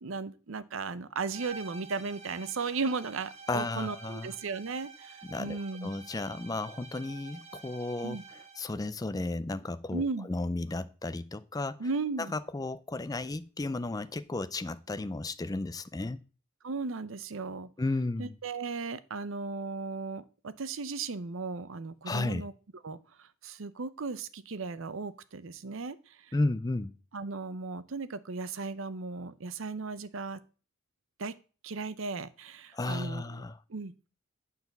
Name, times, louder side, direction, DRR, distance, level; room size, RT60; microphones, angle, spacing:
voice 1, 0.0-5.9 8.0-8.2 9.9-10.3 11.8-12.3 16.6-17.7 18.2-22.5 22.8-26.3 27.1-30.4 31.2-31.3 31.6-33.4 33.7-33.9, right 4 dB, 70° right, 0.7 m, -36 dB
sound 1, 1.3-8.7, right 4 dB, 30° right, 1.6 m, -49 dB
voice 2, 3.5-4.3 5.3-11.8 12.2-16.2 17.8-18.3 22.1-22.4 26.3-26.9 32.7-33.6, left 2 dB, 20° left, 0.4 m, -34 dB
9.5 x 4.1 x 6.6 m
head